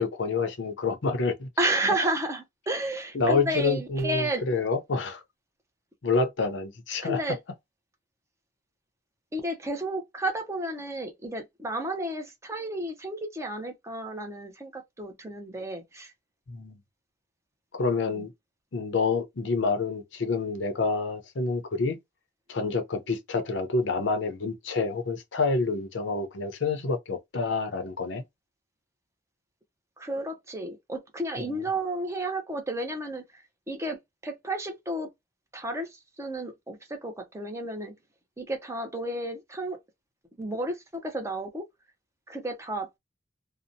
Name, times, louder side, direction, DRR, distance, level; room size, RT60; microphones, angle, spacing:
voice 1, 0.0-1.5 3.1-5.2 6.0-7.2 16.5-16.8 17.8-18.3 18.7-22.0 22.5-28.2, left 4 dB, 75° left, 0.6 m, -28 dB
voice 2, 1.6-4.6 7.0-7.4 9.3-16.1 18.1-18.3 30.0-35.1 35.5-37.9 38.4-39.8 40.4-41.7 42.3-42.9, right 1 dB, 15° right, 0.5 m, -32 dB
2.7 x 2.0 x 2.6 m
head